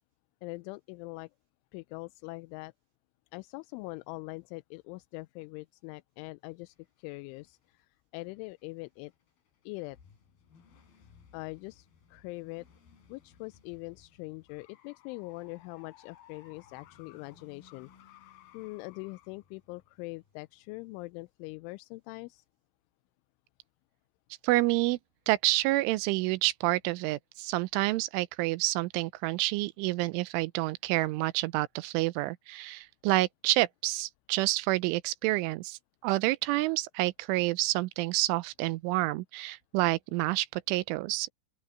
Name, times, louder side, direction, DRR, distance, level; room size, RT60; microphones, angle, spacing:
voice 1, 0.4-1.3 1.7-2.7 3.3-9.1 9.7-10.0 11.3-12.7 13.1-18.3 18.5-22.4, left 23 dB, 85° left, 2.9 m, -43 dB
sound 1, 6.7-7.8 8.2-20.8, left 9 dB, 50° left, 5.4 m, -59 dB
voice 2, 24.4-25.0 25.3-41.3, right 19 dB, 80° right, 3.1 m, -28 dB
open air
omnidirectional pair, 5.7 m